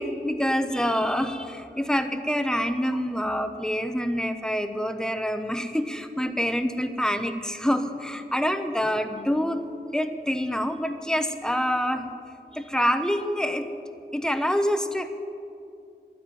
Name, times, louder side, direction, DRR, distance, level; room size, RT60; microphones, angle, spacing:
voice 1, 0.0-9.6 9.9-12.1 12.5-13.7 14.1-15.1, equal, 5° left, 8 dB, 0.9 m, -26 dB
11.5 x 10.0 x 9.2 m, 2.6 s
wide cardioid pair, 50°, 18 cm